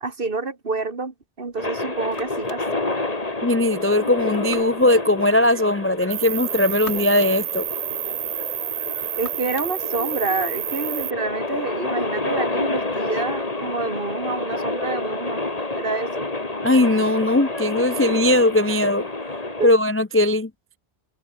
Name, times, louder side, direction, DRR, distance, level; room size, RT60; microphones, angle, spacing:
voice 1, 0.0-2.9 9.2-15.5 15.8-16.3 19.6-19.7, right 3 dB, 55° right, 2.3 m, -28 dB
sound 1, 1.5-11.6, left 1 dB, 80° left, 7.6 m, -47 dB
sound 2, 1.6-19.7, left 2 dB, 35° left, 2.4 m, -29 dB
voice 2, 3.4-7.6 16.6-19.0 19.6-20.5, left 1 dB, 20° left, 0.4 m, -19 dB
Cricket, 6.1-11.1, right 13 dB, 85° right, 0.9 m, -29 dB
omnidirectional pair, 1.1 m